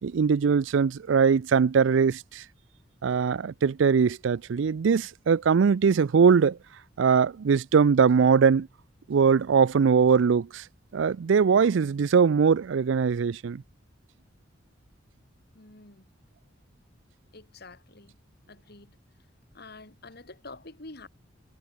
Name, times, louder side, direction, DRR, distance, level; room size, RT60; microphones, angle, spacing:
voice 1, 0.0-2.4 3.0-6.6 7.0-8.7 9.1-10.6 10.9-13.6, right 6 dB, 75° right, 0.4 m, -21 dB
voice 2, 15.5-16.0 17.3-18.2 18.5-19.0 19.5-21.1, left 3 dB, 55° left, 2.8 m, -47 dB
head